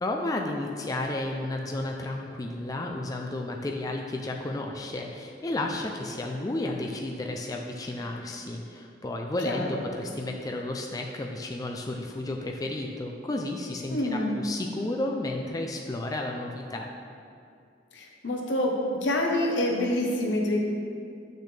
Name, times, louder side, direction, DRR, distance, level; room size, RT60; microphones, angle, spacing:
voice 1, 0.0-16.9, left 2 dB, 20° left, 1 dB, 0.4 m, -32 dB
voice 2, 9.5-9.8 13.9-14.4 17.9-18.7 19.0-20.6, left 1 dB, 75° left, 0 dB, 1.0 m, -27 dB
8.0 x 6.5 x 3.3 m, 2.4 s
head